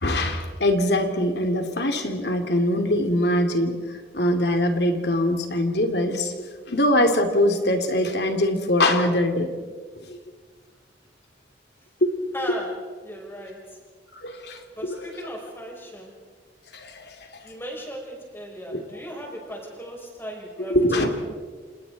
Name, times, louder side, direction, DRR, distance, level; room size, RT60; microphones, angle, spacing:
voice 1, 0.0-9.5 9.9-10.2 12.0-12.3 14.1-15.1 16.7-17.3 18.7-18.8 20.7-21.1, left 1 dB, 70° left, 5 dB, 2.7 m, -23 dB
voice 2, 12.3-13.8 14.8-16.2 17.4-21.1, equal, 15° left, -1 dB, 5.9 m, -37 dB
29.0 x 28.0 x 4.1 m, 1.6 s
head